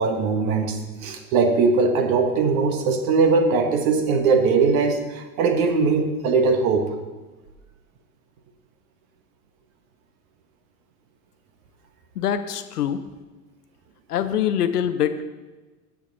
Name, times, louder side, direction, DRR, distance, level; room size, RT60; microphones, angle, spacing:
voice 1, 0.0-6.9, right 4 dB, 65° right, 7 dB, 1.5 m, -20 dB
voice 2, 12.2-13.0 14.1-15.3, left 9 dB, 85° left, 11 dB, 0.8 m, -24 dB
16.0 x 5.9 x 4.1 m, 1.2 s
hypercardioid pair, 85°, 45 cm